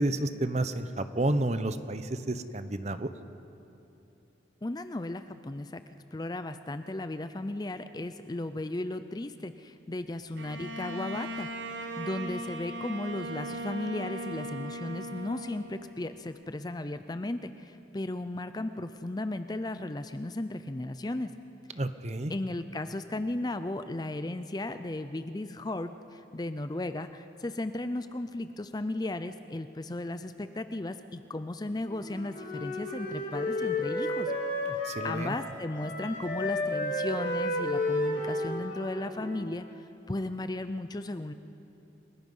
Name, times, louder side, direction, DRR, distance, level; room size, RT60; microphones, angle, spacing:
voice 1, 0.0-3.1 21.8-22.3 34.7-35.3, right 1 dB, 35° right, 11 dB, 0.8 m, -30 dB
voice 2, 4.6-5.8 6.1-11.5 12.0-21.3 22.3-34.3 34.7-41.3, left 2 dB, 20° left, 11 dB, 0.5 m, -35 dB
Bowed string instrument, 10.4-16.1, right 1 dB, 75° right, 1.5 m, -38 dB
Wind instrument woodwind instrument, 31.9-35.5 35.8-39.7, left 1 dB, 45° left, 3.2 m, -32 dB
29.5 x 18.5 x 5.5 m, 2.9 s
head